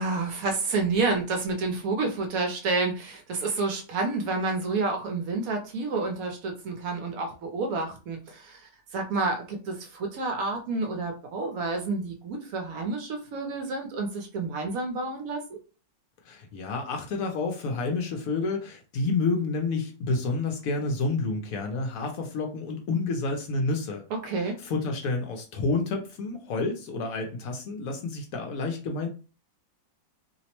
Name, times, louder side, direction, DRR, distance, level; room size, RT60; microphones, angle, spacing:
voice 1, 0.0-15.6 24.2-24.6, right 3 dB, 70° right, 3 dB, 0.9 m, -29 dB
voice 2, 16.2-24.1 24.6-29.1, left 3 dB, 70° left, 3 dB, 0.9 m, -29 dB
2.8 x 2.0 x 2.9 m, 0.35 s
omnidirectional pair, 1.7 m